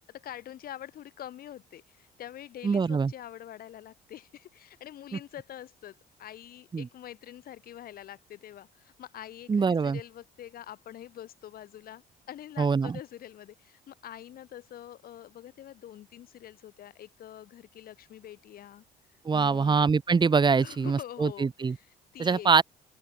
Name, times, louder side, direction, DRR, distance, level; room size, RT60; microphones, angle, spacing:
voice 1, 0.1-18.8 19.3-19.8 20.6-22.5, left 11 dB, 60° left, 4.2 m, -45 dB
voice 2, 2.6-3.1 6.7-6.9 9.5-10.0 12.6-13.0 19.3-21.7 22.2-22.6, right 5 dB, 25° right, 2.0 m, -24 dB
open air
cardioid pair, 110°, 17 cm